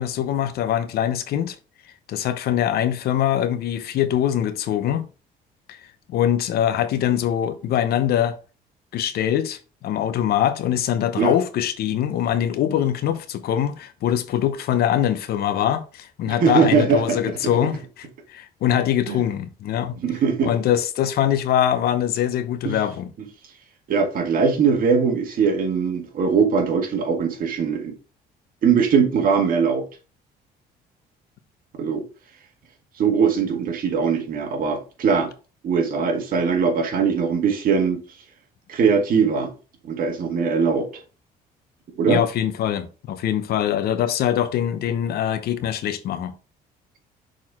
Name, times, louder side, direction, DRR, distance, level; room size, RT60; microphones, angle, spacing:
voice 1, 0.0-1.6 2.1-5.1 5.7-5.8 6.1-8.4 8.9-20.0 20.4-23.1 42.1-46.3, left 10 dB, 70° left, 0.8 m, -23 dB
voice 2, 16.3-17.2 17.4-17.6 19.1-19.2 20.0-20.5 22.6-22.8 23.9-27.9 28.6-29.8 31.8-32.0 33.0-35.3 35.6-38.0 38.7-39.5 39.8-40.9 41.9-42.2, right 5 dB, 55° right, 1.8 m, -21 dB
6.3 x 4.2 x 3.6 m
cardioid pair, 110°, 17 cm